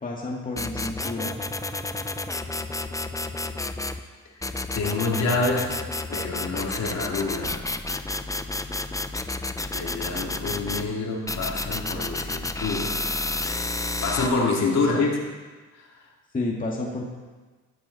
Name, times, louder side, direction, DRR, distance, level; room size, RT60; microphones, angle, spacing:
voice 1, 0.0-1.4 14.7-15.1 16.3-17.0, left 2 dB, 25° left, -2 dB, 2.1 m, -30 dB
sound 1, 0.6-4.0 4.4-10.9 11.3-14.3, left 2 dB, 10° left, 0.6 m, -31 dB
voice 2, 4.7-5.7 6.1-7.6 9.7-13.0 14.0-15.1, left 3 dB, 60° left, -2 dB, 3.1 m, -26 dB
13.0 x 12.5 x 4.2 m, 1.4 s
cardioid pair, 90°, 30 cm